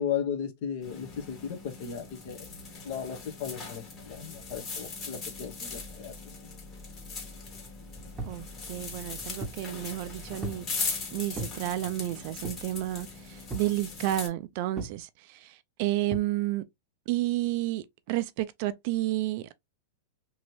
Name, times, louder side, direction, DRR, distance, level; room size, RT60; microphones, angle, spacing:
voice 1, 0.0-2.5 2.8-6.6, left 8 dB, 55° left, 0.9 m, -36 dB
sound 1, 0.8-14.3, left 4 dB, 30° left, 1.5 m, -40 dB
sound 2, 8.2-8.4 9.0-9.7 10.4-10.7 11.3-11.6 12.4-12.8 13.5-13.8 14.8-15.0 16.1-16.3, right 2 dB, 15° right, 0.8 m, -38 dB
voice 2, 8.2-16.6 17.1-19.6, right 15 dB, 50° right, 0.4 m, -31 dB
3.0 x 2.8 x 3.0 m
supercardioid pair, 150°, 0 cm